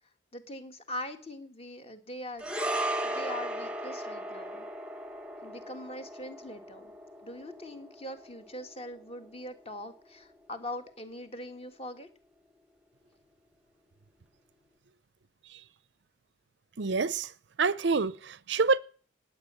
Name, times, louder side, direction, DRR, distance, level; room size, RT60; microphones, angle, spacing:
voice 1, 0.3-2.5 3.0-4.6 5.4-6.9 7.2-12.1, left 1 dB, 30° left, 1.8 m, -42 dB
sound 1, 2.4-10.9 11.1-11.3, right 1 dB, 5° right, 1.0 m, -37 dB
voice 2, 16.8-17.3 17.6-18.8, right 4 dB, 60° right, 0.6 m, -27 dB
19.0 x 8.5 x 7.0 m
head